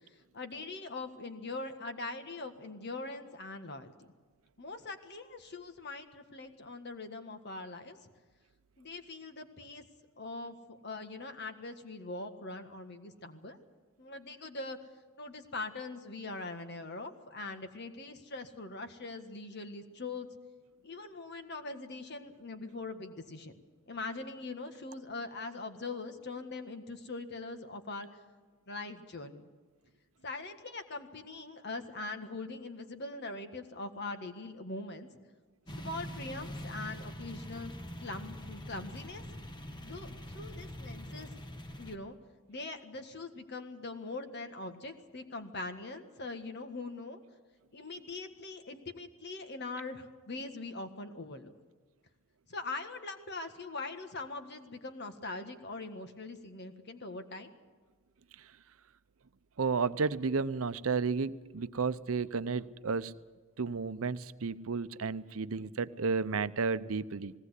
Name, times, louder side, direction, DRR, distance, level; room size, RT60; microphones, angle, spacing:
voice 1, 0.3-3.9 4.6-8.0 8.8-9.8 10.2-13.6 14.0-14.8 15.2-20.3 20.8-23.5 23.9-28.1 28.7-29.5 30.2-35.1 35.8-37.7 38.0-39.2 39.8-41.3 41.8-42.2 42.5-47.2 47.7-51.5 52.5-57.5, left 3 dB, 50° left, 7 dB, 1.7 m, -42 dB
sound 1, 35.7-42.0, equal, 20° left, 1.1 m, -44 dB
voice 2, 59.6-63.1 63.6-67.3, right 4 dB, 75° right, 14 dB, 0.7 m, -32 dB
20.0 x 18.0 x 8.2 m, 1.4 s
head